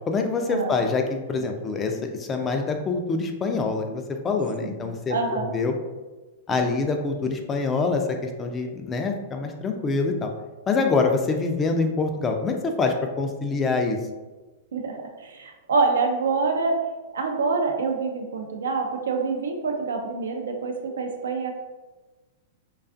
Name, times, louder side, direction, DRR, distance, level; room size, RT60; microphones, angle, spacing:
voice 1, 0.1-5.7 6.5-10.3 10.7-14.0, left 4 dB, 20° left, 4 dB, 0.3 m, -25 dB
voice 2, 4.6-5.5 14.7-16.8 17.1-21.5, right 4 dB, 80° right, 3 dB, 0.4 m, -26 dB
2.4 x 2.3 x 2.5 m, 1.2 s
hypercardioid pair, 115°, 0 cm